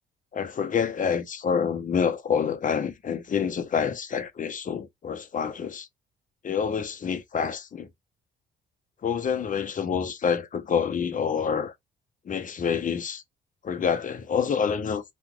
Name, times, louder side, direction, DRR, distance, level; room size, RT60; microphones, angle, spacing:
voice 1, 0.3-5.9 6.4-7.9 9.0-11.7 12.3-13.2 13.6-15.1, left 7 dB, 40° left, 0.7 m, -27 dB
2.9 x 2.4 x 3.6 m
cardioid pair, 90°, 20 cm